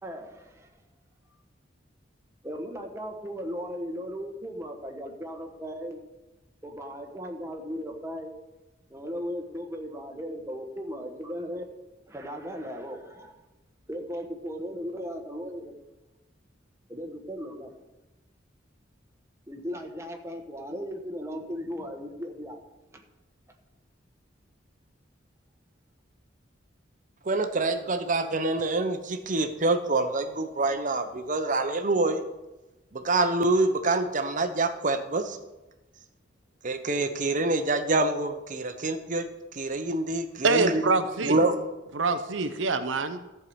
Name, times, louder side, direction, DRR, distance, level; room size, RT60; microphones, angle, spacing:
voice 1, 0.0-0.7 2.4-6.0 6.6-8.3 8.9-11.6 12.1-13.4 13.9-15.7 16.9-17.7 19.5-22.6 22.9-23.0, equal, 15° right, 2 dB, 1.2 m, -37 dB
voice 2, 27.2-32.2 32.9-35.4 36.6-39.3 39.5-40.8 41.2-41.6, right 2 dB, 45° right, 8 dB, 0.9 m, -26 dB
voice 3, 40.4-41.4 41.9-43.2, right 3 dB, 80° right, 9 dB, 0.7 m, -25 dB
14.0 x 4.7 x 7.9 m, 1.0 s
head